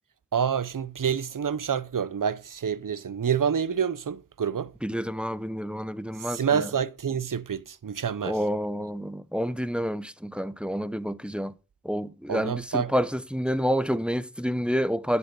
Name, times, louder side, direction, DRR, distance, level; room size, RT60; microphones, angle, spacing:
voice 1, 0.3-4.7 6.2-8.4 12.3-12.9, right 7 dB, 65° right, 0.8 m, -28 dB
voice 2, 4.8-6.7 8.2-11.5 11.8-15.2, equal, 5° right, 0.8 m, -29 dB
11.5 x 9.7 x 3.9 m
wide cardioid pair, 90°, 35 cm